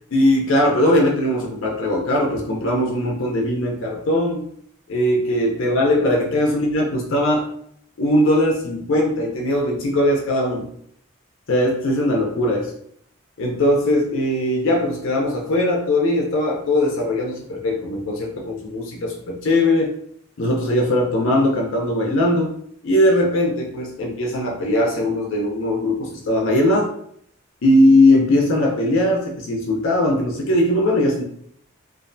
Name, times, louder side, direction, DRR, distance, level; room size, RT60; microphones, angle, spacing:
voice 1, 0.1-4.5 4.9-7.5 8.0-10.7 11.5-12.7 13.4-19.9 20.4-22.6 22.8-26.9 27.6-31.2, left 1 dB, 75° left, 0 dB, 0.5 m, -19 dB
2.4 x 2.1 x 2.5 m, 0.67 s
head